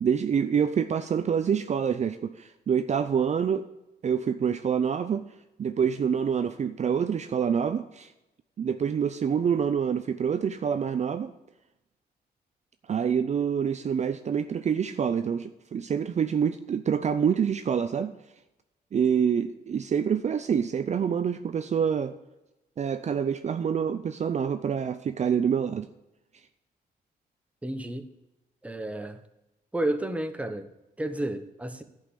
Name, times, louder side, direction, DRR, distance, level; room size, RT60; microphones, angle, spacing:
voice 1, 0.0-3.7 4.0-5.2 5.6-8.1 8.6-11.3 12.9-18.1 18.9-22.2 22.8-25.9, right 7 dB, 45° right, 10 dB, 0.5 m, -26 dB
voice 2, 27.6-28.1 28.6-29.2 29.7-30.7 31.0-31.8, right 1 dB, 10° right, 8 dB, 0.9 m, -31 dB
11.0 x 5.5 x 8.3 m, 0.95 s
cardioid pair, 115°, 17 cm